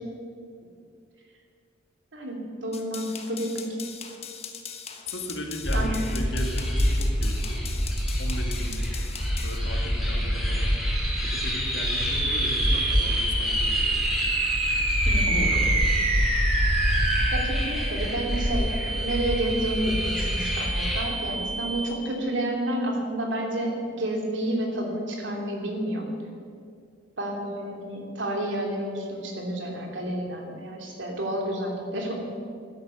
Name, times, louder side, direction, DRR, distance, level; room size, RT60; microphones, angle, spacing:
voice 1, 2.1-3.7 5.7-5.9 15.0-15.5 17.3-26.1 27.2-32.2, right 1 dB, 70° right, 1 dB, 2.9 m, -30 dB
sound 1, 2.7-9.6, left 7 dB, 35° left, 1.2 m, -40 dB
voice 2, 5.1-7.6 8.2-9.0 9.4-10.8 11.2-14.2 15.3-15.8, left 1 dB, 65° left, 2 dB, 2.2 m, -37 dB
sound 2, 5.6-21.0, equal, ahead, 3.1 m, -27 dB
sound 3, 10.8-22.2, right 2 dB, 35° right, 2.7 m, -28 dB
12.5 x 11.0 x 7.8 m, 2.3 s
head